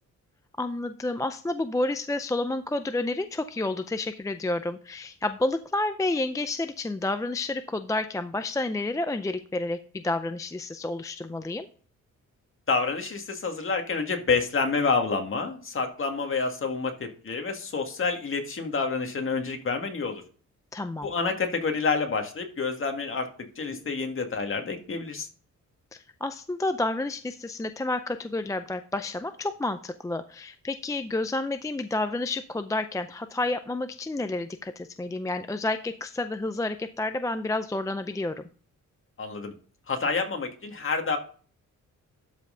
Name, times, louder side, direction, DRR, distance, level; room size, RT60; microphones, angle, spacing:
voice 1, 0.6-11.7 20.7-21.1 25.9-38.5, left 2 dB, 10° left, 9 dB, 0.4 m, -30 dB
voice 2, 12.7-20.2 21.0-23.3 23.6-25.3 39.2-39.5 39.9-41.2, left 4 dB, 40° left, 4 dB, 1.9 m, -28 dB
12.5 x 5.4 x 3.8 m, 0.43 s
cardioid pair, 120°, 31 cm